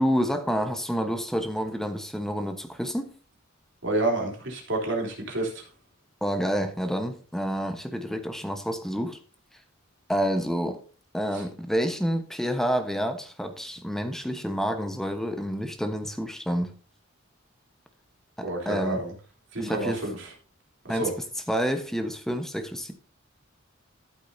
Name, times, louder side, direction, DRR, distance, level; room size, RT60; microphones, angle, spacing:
voice 1, 0.0-3.1 6.2-9.2 10.1-10.8 11.1-16.7 18.4-19.0 19.6-20.0 20.9-21.1 21.5-22.9, equal, ahead, 6 dB, 1.2 m, -28 dB
voice 2, 3.8-5.6 11.3-11.4 18.4-19.1 19.5-20.3 20.8-21.1, right 2 dB, 65° right, 0 dB, 3.5 m, -29 dB
13.5 x 8.4 x 2.8 m, 0.40 s
head